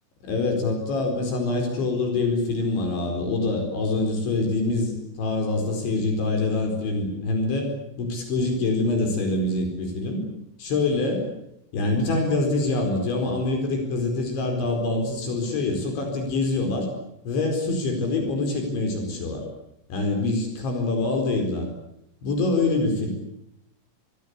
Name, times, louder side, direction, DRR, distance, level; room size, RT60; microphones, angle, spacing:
voice 1, 0.2-7.7 8.0-10.2 10.6-11.3 11.7-16.9 17.2-19.4 19.9-21.7 22.2-23.1, left 2 dB, 65° left, 4 dB, 6.8 m, -25 dB
27.5 x 22.0 x 8.4 m, 0.80 s
omnidirectional pair, 5.7 m